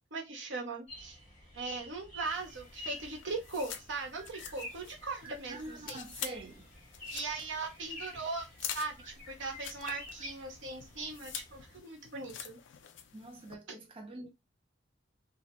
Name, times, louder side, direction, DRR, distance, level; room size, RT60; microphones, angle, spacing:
voice 1, 0.1-1.2 1.5-6.0 7.1-12.6, right 3 dB, 85° right, 1.0 m, -39 dB
sound 1, 0.9-11.8, left 1 dB, 10° left, 1.4 m, -49 dB
sound 2, 2.2-13.5, left 9 dB, 80° left, 0.4 m, -47 dB
voice 2, 5.5-6.7 13.1-14.3, right 2 dB, 30° right, 0.4 m, -45 dB
2.7 x 2.2 x 2.9 m
head